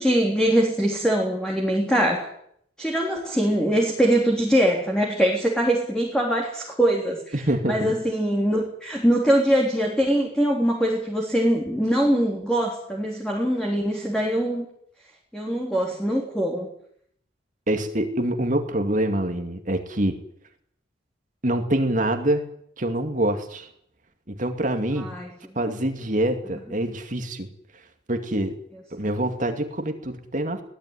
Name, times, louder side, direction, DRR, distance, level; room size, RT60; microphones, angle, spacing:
voice 1, 0.0-2.3 2.8-7.4 7.7-14.7 15.3-16.7 25.0-25.3, right 1 dB, 5° left, -1 dB, 3.7 m, -22 dB
voice 2, 7.3-7.9 17.7-20.2 21.4-22.5 22.8-23.7 24.3-25.1 25.6-27.5 27.7-27.8 28.1-28.5 28.9-30.6, right 1 dB, 40° right, 6 dB, 2.4 m, -25 dB
21.0 x 18.0 x 9.9 m, 0.69 s
head